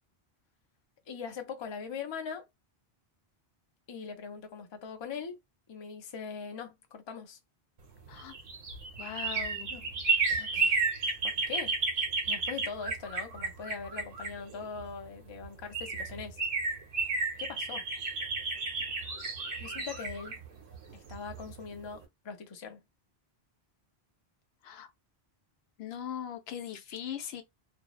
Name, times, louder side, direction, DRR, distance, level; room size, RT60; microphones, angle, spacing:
voice 1, 1.1-2.5 3.9-5.4 5.7-7.4 9.7-9.9 10.3-10.8 11.2-11.8 12.3-16.4 17.4-17.8 19.6-20.4 20.9-22.8, left 6 dB, 40° left, 0.4 m, -41 dB
sound 1, 8.1-14.9 15.4-15.5 15.7-21.5 21.9-22.0, right 4 dB, 85° right, 1.1 m, -32 dB
voice 2, 9.0-9.7 24.6-24.9 25.8-27.4, left 9 dB, 80° left, 0.8 m, -40 dB
2.6 x 2.0 x 2.3 m
omnidirectional pair, 1.0 m